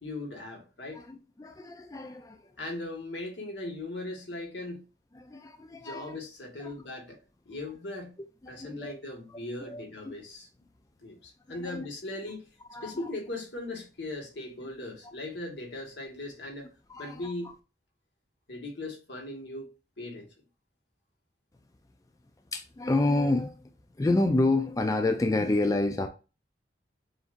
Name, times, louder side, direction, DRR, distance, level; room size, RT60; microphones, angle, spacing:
voice 1, 0.0-1.1 2.6-4.8 5.8-7.2 7.4-8.1 8.5-10.5 11.0-12.4 12.8-16.7 17.0-17.5 18.5-19.7 20.0-20.3, left 2 dB, 80° left, 1.6 m, -39 dB
voice 2, 1.1-2.4 5.1-6.2 6.6-6.7 8.4-8.9 9.3-9.4 9.7-10.2 11.5-11.9 12.7-12.9 16.9-17.3 22.5-23.7 24.0-26.1, left 2 dB, 20° left, 0.4 m, -29 dB
7.0 x 2.6 x 2.5 m
head